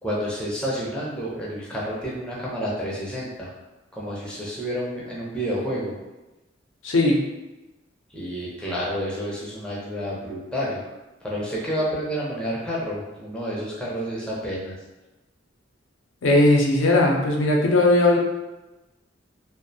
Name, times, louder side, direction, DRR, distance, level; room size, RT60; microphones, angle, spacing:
voice 1, 0.0-3.5 3.9-6.0 8.1-10.8 11.2-14.8, equal, 5° left, -6 dB, 0.5 m, -29 dB
voice 2, 6.8-7.2 16.2-18.2, left 2 dB, 85° left, -1 dB, 0.5 m, -18 dB
2.5 x 2.1 x 2.6 m, 1.0 s
head